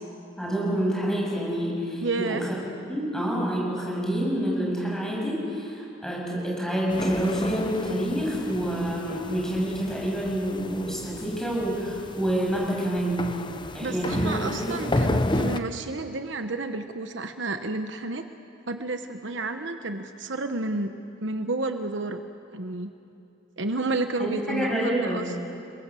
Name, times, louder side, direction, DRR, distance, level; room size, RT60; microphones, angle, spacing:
voice 1, 0.4-2.4 2.9-13.3 13.7-14.4 14.6-14.8 24.2-25.2, right 1 dB, ahead, -4 dB, 7.6 m, -27 dB
voice 2, 2.0-2.5 13.8-18.3 18.7-20.9 21.2-22.2 22.5-22.9 23.6-25.3, right 2 dB, 65° right, 7 dB, 1.1 m, -30 dB
sound 1, 6.9-15.6, left 1 dB, 25° left, 0.9 m, -32 dB
29.5 x 22.0 x 7.7 m, 2.6 s
head